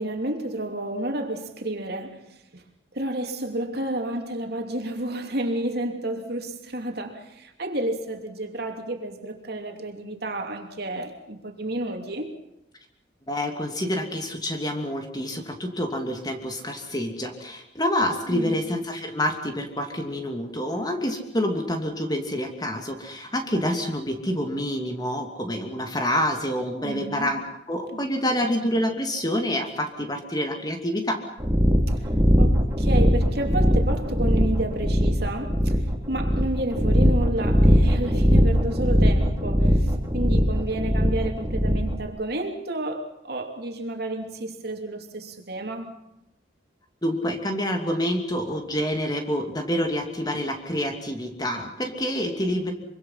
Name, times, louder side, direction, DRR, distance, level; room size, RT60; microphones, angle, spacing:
voice 1, 0.0-2.6 2.9-12.4 18.3-18.5 26.8-27.3 27.9-28.1 32.4-35.8 36.1-39.8 40.1-45.9, right 1 dB, 55° right, 2.9 m, -31 dB
voice 2, 13.3-31.2 47.0-52.7, equal, 20° left, 2.7 m, -27 dB
sound 1, 31.4-42.0, equal, 15° right, 3.0 m, -20 dB
25.0 x 24.5 x 5.8 m
head